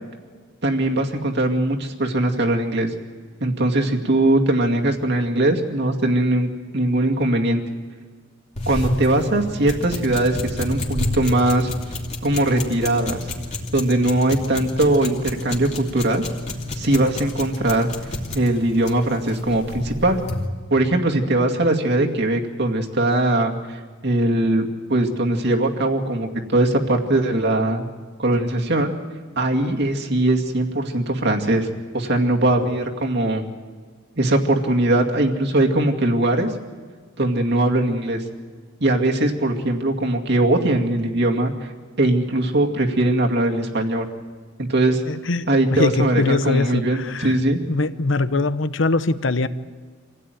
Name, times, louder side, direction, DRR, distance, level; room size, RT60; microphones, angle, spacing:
voice 1, 0.6-2.9 3.4-6.5 6.7-7.6 8.7-11.7 12.2-13.2 13.7-16.2 16.8-17.9 18.3-20.2 20.7-27.9 28.2-28.9 29.4-31.7 31.9-33.4 34.2-36.5 37.2-38.2 38.8-41.5 42.0-44.1 44.7-45.0 45.5-47.6, right 1 dB, 60° right, 2 dB, 2.3 m, -20 dB
sound 1, 8.6-20.5, left 2 dB, 35° left, 2.8 m, -30 dB
voice 2, 45.1-47.4 47.7-49.5, left 3 dB, 70° left, 13 dB, 0.9 m, -22 dB
26.5 x 16.5 x 9.3 m, 1.5 s
head